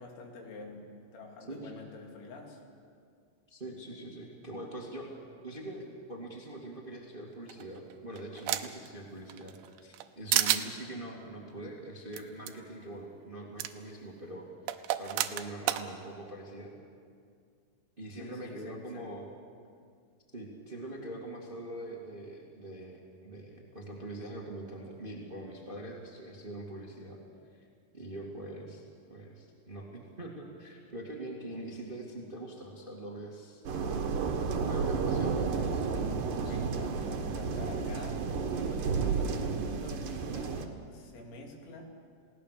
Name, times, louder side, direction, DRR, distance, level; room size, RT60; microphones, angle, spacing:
voice 1, 0.0-2.6 18.2-19.1 35.2-36.0 36.4-38.3 38.7-41.9, left 3 dB, 90° left, 1 dB, 5.1 m, -47 dB
voice 2, 1.5-1.8 3.5-5.1 5.4-14.5 15.0-16.7 18.0-19.2 20.3-27.2 27.6-27.7 27.9-33.6 34.6-35.8 36.4-36.7, right 1 dB, 20° right, -1 dB, 1.4 m, -43 dB
sound 1, 7.5-8.9 9.3-10.1 10.3-10.7 12.1-12.2 12.5-12.6 13.6-13.7 14.7-15.8, right 13 dB, 80° right, 2.9 m, -30 dB
sound 2, 33.6-40.6, right 5 dB, 60° right, 2.6 m, -31 dB
30.0 x 17.5 x 6.8 m, 2.2 s
omnidirectional pair, 5.1 m